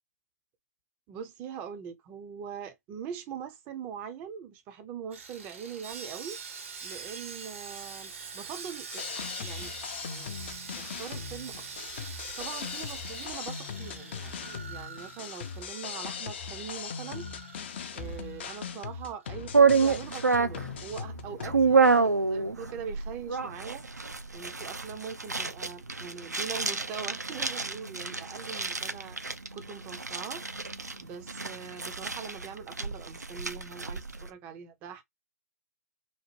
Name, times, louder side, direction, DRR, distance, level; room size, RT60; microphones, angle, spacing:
voice 1, 1.1-6.4 6.8-9.7 10.0-11.6 12.1-23.8 24.3-29.2 29.5-35.0, right 7 dB, 20° right, 0.4 m, -42 dB
Sawing, 5.1-19.4 19.6-19.8 20.3-20.4, right 5 dB, 50° right, 0.7 m, -44 dB
sound 1, 8.9-22.0, left 6 dB, 40° left, 0.4 m, -39 dB
sound 2, 19.5-34.3, right 4 dB, 85° right, 0.5 m, -28 dB
2.9 x 2.0 x 2.8 m
figure-of-eight pair, 130°, 9 cm